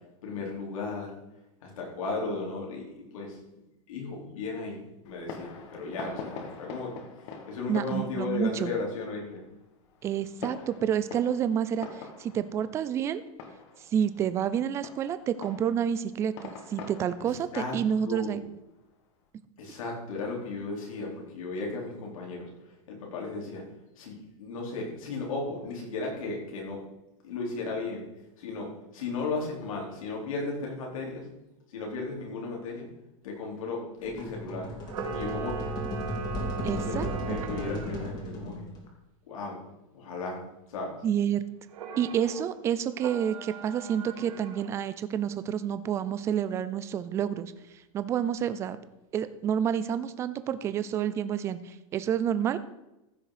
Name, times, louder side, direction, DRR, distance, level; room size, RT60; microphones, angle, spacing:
voice 1, 0.2-1.1 1.6-9.4 17.3-17.8 18.0-18.4 19.6-22.5 22.9-23.6 24.0-26.8 27.2-28.1 28.4-31.3 31.7-32.9 33.2-34.7 35.1-35.7 36.6-38.6 39.3-39.6 39.9-40.4 40.7-41.0, left 3 dB, 80° left, -1 dB, 4.2 m, -35 dB
Fireworks, 5.0-19.2, left 5 dB, 55° left, 1.8 m, -46 dB
voice 2, 7.7-8.7 10.0-13.2 13.9-18.4 36.6-37.4 41.0-41.5 42.0-47.5 47.9-48.8 49.1-52.6, right 9 dB, 15° right, 13 dB, 0.4 m, -29 dB
sound 1, 34.0-38.9, equal, 25° left, 2.2 m, -35 dB
Camera, 34.8-38.1 41.7-42.4 42.9-44.8, right 5 dB, 85° right, 2.1 m, -39 dB
14.5 x 6.3 x 5.0 m, 0.93 s
supercardioid pair, 165°, 17 cm